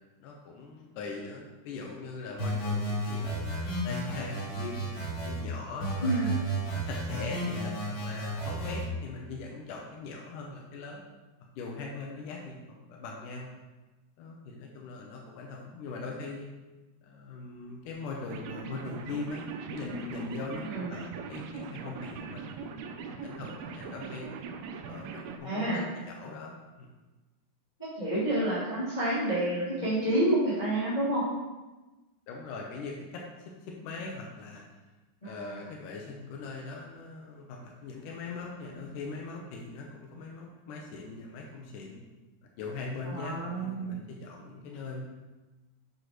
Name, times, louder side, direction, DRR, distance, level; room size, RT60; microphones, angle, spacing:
voice 1, 0.2-11.0 11.6-13.5 14.2-16.5 17.0-24.3 24.9-26.9 32.3-34.6 35.2-42.0 42.6-45.0, left 3 dB, 80° left, -1 dB, 1.9 m, -41 dB
sound 1, 2.4-5.4 5.8-8.8, right 1 dB, 45° left, 3.6 m, -33 dB
voice 2, 6.0-6.3 20.7-20.9 25.4-25.8 27.8-31.2 35.2-35.4 43.0-44.0, right 1 dB, 15° left, -11 dB, 2.2 m, -29 dB
sound 2, 18.3-25.4, right 5 dB, 80° right, 2.3 m, -41 dB
8.6 x 7.7 x 3.1 m, 1.1 s
omnidirectional pair, 4.9 m